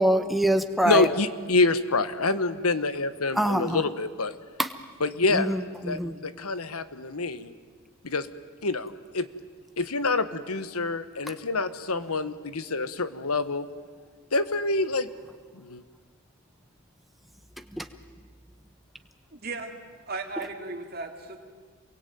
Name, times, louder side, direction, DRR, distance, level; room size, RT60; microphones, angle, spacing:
voice 1, 0.0-1.1 3.3-3.8 4.6-4.7 5.3-6.1 17.7-17.9, right 1 dB, ahead, 8 dB, 1.2 m, -24 dB
voice 2, 0.8-4.3 5.0-5.5 5.8-7.5 8.0-8.3 8.6-9.3 9.8-13.6 14.3-15.1 15.5-15.8, left 3 dB, 90° left, 13 dB, 1.4 m, -26 dB
voice 3, 19.3-19.8 20.1-21.4, right 3 dB, 45° right, 3 dB, 3.0 m, -36 dB
28.0 x 22.5 x 9.3 m, 1.5 s
head